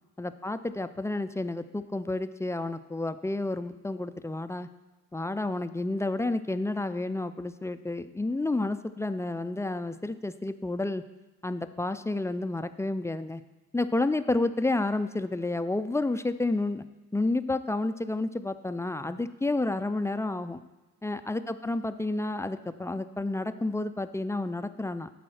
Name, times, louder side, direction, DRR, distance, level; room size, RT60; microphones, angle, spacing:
voice 1, 0.2-4.7 5.1-11.1 11.4-13.4 13.7-16.8 17.1-20.6 21.0-25.1, left 2 dB, 10° left, 11 dB, 0.3 m, -30 dB
12.0 x 4.2 x 6.4 m, 1.2 s
cardioid pair, 90°, 30 cm